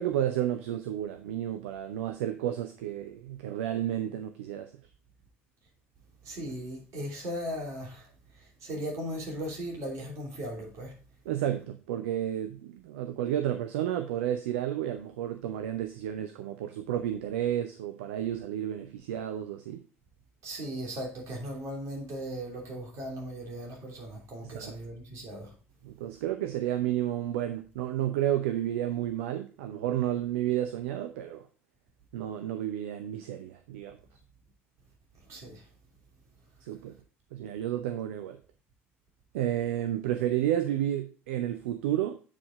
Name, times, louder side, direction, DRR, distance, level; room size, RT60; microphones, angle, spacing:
voice 1, 0.0-4.7 11.3-19.8 24.4-24.7 25.8-31.5 32.1-34.0 36.6-37.0 37.3-38.4 39.3-42.2, right 11 dB, 65° right, 0.6 m, -31 dB
voice 2, 6.2-11.0 20.4-25.5 35.2-35.7, equal, 45° right, 3.0 m, -38 dB
8.4 x 4.8 x 3.8 m
figure-of-eight pair, 60°, 7 cm